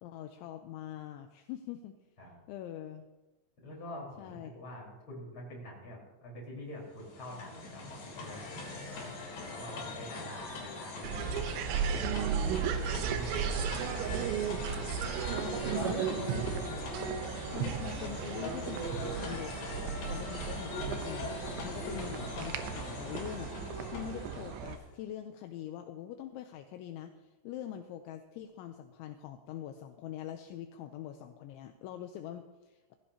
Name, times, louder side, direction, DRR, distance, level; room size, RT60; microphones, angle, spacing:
voice 1, 0.0-2.0 2.5-3.1 4.2-4.5 15.3-16.9 17.5-23.5 23.9-32.9, left 11 dB, 80° left, 6 dB, 2.9 m, -44 dB
voice 2, 3.6-8.8 9.5-12.1 12.4-14.2 21.6-21.7, left 1 dB, 25° left, -3 dB, 5.1 m, -46 dB
sound 1, 6.9-24.9, left 3 dB, 60° left, 5.4 m, -41 dB
sound 2, 11.0-24.8, right 7 dB, 75° right, 2.8 m, -35 dB
19.5 x 15.5 x 2.9 m, 1.1 s
omnidirectional pair, 5.6 m